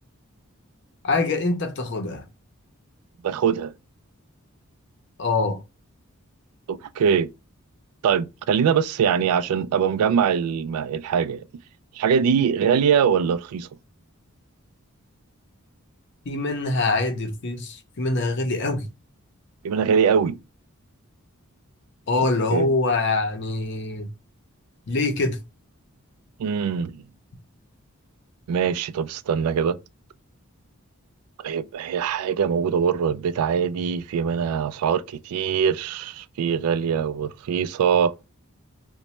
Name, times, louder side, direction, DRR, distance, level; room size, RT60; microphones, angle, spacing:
voice 1, 1.0-2.2 5.2-5.6 16.3-18.9 22.1-24.1 24.9-25.4, left 3 dB, 50° left, 0.6 m, -24 dB
voice 2, 3.2-3.7 6.7-7.3 8.0-11.5 11.9-13.7 19.6-20.4 22.5-22.7 26.4-27.0 28.5-29.8 31.4-38.1, right 7 dB, 85° right, 0.3 m, -22 dB
2.9 x 2.1 x 4.1 m
head